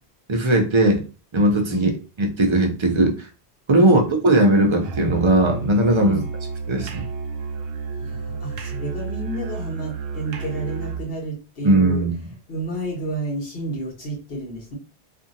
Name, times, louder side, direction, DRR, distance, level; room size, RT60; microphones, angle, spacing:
voice 1, 0.3-1.0 1.3-1.9 2.2-3.3 3.7-6.2 6.7-7.0 11.6-12.1, right 1 dB, 45° right, 2 dB, 0.4 m, -18 dB
Musical instrument, 4.8-11.1, right 4 dB, 70° right, 0.8 m, -31 dB
voice 2, 8.0-12.0 12.5-14.8, right 1 dB, 65° left, 0 dB, 1.2 m, -31 dB
2.6 x 2.5 x 2.5 m, 0.34 s
omnidirectional pair, 1.1 m